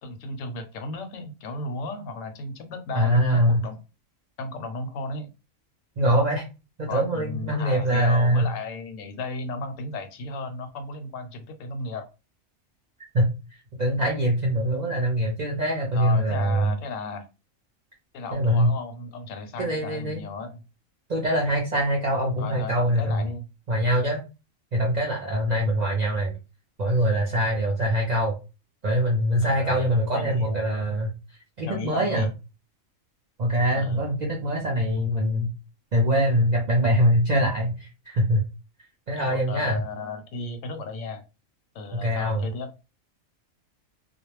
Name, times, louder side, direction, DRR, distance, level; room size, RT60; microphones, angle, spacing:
voice 1, 0.0-3.8 4.4-5.3 6.9-12.1 15.9-17.3 18.1-20.6 22.4-23.4 29.4-30.6 31.7-32.3 33.7-34.0 39.2-41.2 41.7-42.7, left 3 dB, 75° left, 8 dB, 0.9 m, -35 dB
voice 2, 2.9-3.6 6.0-6.4 6.8-8.5 13.1-13.3 13.8-16.7 18.3-18.7 19.6-20.2 21.1-23.3 23.7-24.2 24.7-26.4 26.8-28.4 28.8-31.1 31.6-32.3 33.4-35.5 35.9-38.4 39.1-39.8 41.9-42.5, equal, 60° right, -2 dB, 0.4 m, -23 dB
2.3 x 2.0 x 3.0 m, 0.29 s
omnidirectional pair, 1.4 m